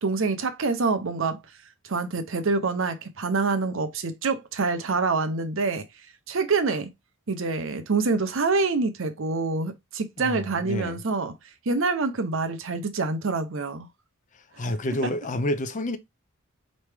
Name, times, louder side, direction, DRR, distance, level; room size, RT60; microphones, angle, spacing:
voice 1, 0.0-1.4 1.8-5.8 6.3-6.9 7.3-11.3 11.7-13.9 15.0-15.1, right 4 dB, 60° right, 0.7 m, -26 dB
voice 2, 10.2-11.0 14.6-16.0, left 1 dB, 35° left, 0.5 m, -29 dB
4.4 x 3.1 x 3.3 m
head